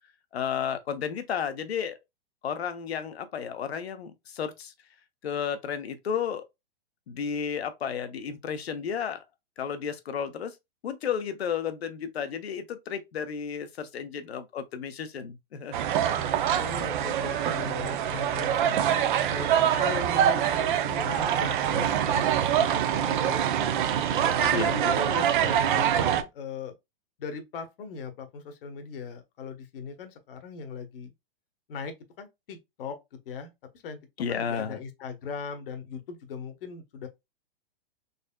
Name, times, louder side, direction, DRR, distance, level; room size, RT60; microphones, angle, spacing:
voice 1, 0.3-2.0 2.4-4.7 5.2-6.4 7.1-9.2 9.6-10.6 10.8-15.8 24.5-24.7 34.2-34.8, left 7 dB, 90° left, 0.9 m, -32 dB
sound 1, 15.7-26.2, right 9 dB, 55° right, 0.7 m, -25 dB
voice 2, 16.6-18.8 19.3-23.7 24.2-26.7 27.2-31.1 31.7-33.0 33.3-33.5 33.8-34.0 34.3-37.1, left 5 dB, 65° left, 1.1 m, -39 dB
4.1 x 3.3 x 2.2 m
hypercardioid pair, 140°, 30 cm